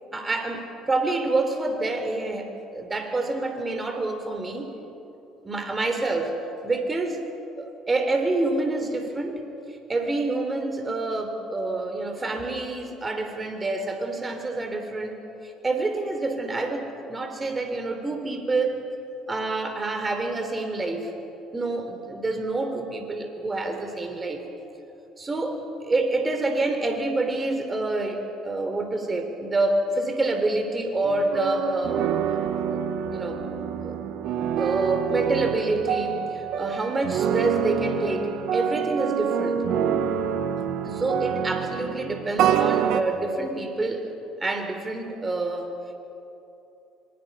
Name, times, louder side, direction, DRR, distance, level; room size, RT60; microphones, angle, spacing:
voice 1, 0.1-4.7 5.4-6.3 6.6-7.2 7.6-9.4 9.9-18.8 19.3-21.1 21.5-24.4 25.2-32.0 32.7-33.4 33.8-34.0 34.5-39.7 40.8-44.1 44.4-46.0, right 2 dB, 25° right, 5 dB, 4.0 m, -27 dB
sound 1, 31.0-43.0, right 8 dB, 65° right, 1.5 m, -26 dB
26.5 x 25.5 x 5.8 m, 2.9 s
hypercardioid pair, 60°, 0 cm